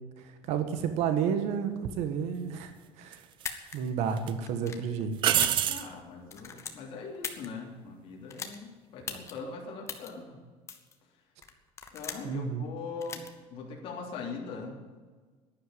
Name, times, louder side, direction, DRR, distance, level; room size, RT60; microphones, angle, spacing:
voice 1, 0.2-2.7 3.0-3.2 3.7-5.2 12.2-12.6, right 7 dB, 60° right, 8 dB, 1.4 m, -31 dB
sound 1, 1.8-2.0 3.1-3.8 4.2-4.3 5.2-5.9 9.0-9.4, right 11 dB, 40° right, 0.7 m, -27 dB
sound 2, 3.3-3.8 4.4-4.9 5.3-6.0 6.3-7.5 8.3-8.6 9.1-9.3 9.9-10.1 10.7-10.9 11.4-12.3 13.0-13.3, left 6 dB, 20° left, 1.3 m, -39 dB
voice 2, 5.7-10.4 11.9-14.8, left 4 dB, 45° left, -2 dB, 3.2 m, -41 dB
11.5 x 10.5 x 9.4 m, 1.4 s
cardioid pair, 170°, 13 cm